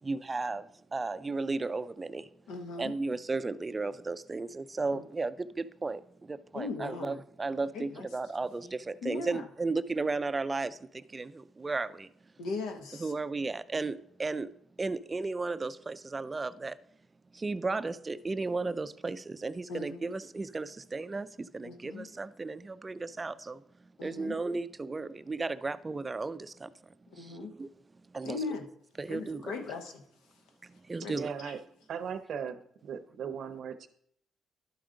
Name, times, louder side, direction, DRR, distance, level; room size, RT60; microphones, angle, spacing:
voice 1, 0.0-2.3 2.8-12.1 13.0-14.5 14.8-16.7 17.3-23.6 24.0-26.7 27.2-27.7 28.1-28.4 29.0-29.5 30.9-31.3, right 3 dB, 25° right, 0.3 m, -34 dB
voice 2, 2.5-2.9 4.9-5.0 6.5-7.2 7.7-8.1 9.0-9.4 12.4-13.1 19.7-20.2 21.6-22.1 24.0-24.4 27.1-27.5 28.2-28.6 29.1-30.0 31.0-31.1, left 4 dB, 90° left, 0.9 m, -38 dB
voice 3, 31.1-31.6 31.9-33.9, right 7 dB, 65° right, 0.6 m, -38 dB
11.5 x 4.9 x 3.8 m
cardioid pair, 90°, 0 cm